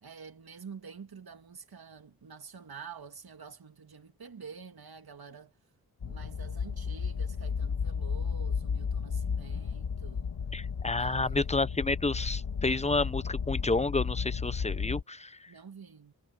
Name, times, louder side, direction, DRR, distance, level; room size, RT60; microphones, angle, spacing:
voice 1, 0.0-5.5 6.0-10.3 11.0-11.5 15.5-16.1, right 6 dB, 65° right, 2.4 m, -48 dB
sound 1, 6.0-15.0, left 6 dB, 80° left, 2.1 m, -33 dB
voice 2, 10.5-15.5, left 3 dB, 15° left, 0.8 m, -30 dB
cardioid pair, 55°, 40 cm